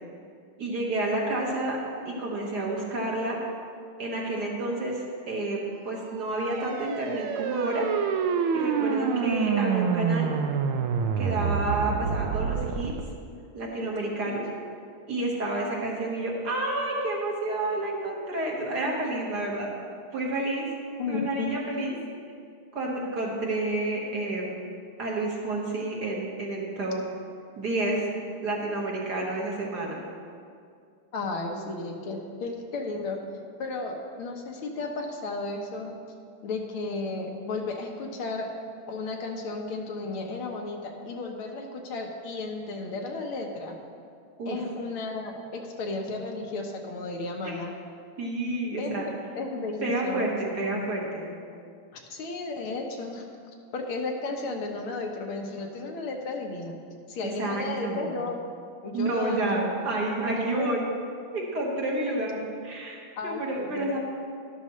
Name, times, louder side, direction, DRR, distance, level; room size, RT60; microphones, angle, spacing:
voice 1, 0.6-1.8 2.1-3.4 4.0-5.0 5.3-7.9 8.5-10.3 11.2-12.9 13.5-14.5 15.1-19.7 20.1-20.7 21.1-21.9 22.7-24.5 25.0-27.1 27.6-30.0 44.4-44.6 47.4-47.5 48.2-49.1 49.8-51.3 57.4-58.1 58.9-60.9 61.3-64.0, right 2 dB, 50° right, -3 dB, 2.0 m, -29 dB
sound 1, 6.1-13.0, right 6 dB, 80° right, 1.5 m, -27 dB
voice 2, 21.0-21.5 31.1-33.2 33.6-35.9 36.4-38.5 38.9-43.8 44.5-47.7 48.8-50.9 51.9-53.2 53.7-56.8 57.1-58.4 58.8-59.8 60.3-60.8 63.2-64.0, left 3 dB, 80° left, 2 dB, 1.9 m, -34 dB
12.5 x 12.0 x 3.1 m, 2.3 s
omnidirectional pair, 2.3 m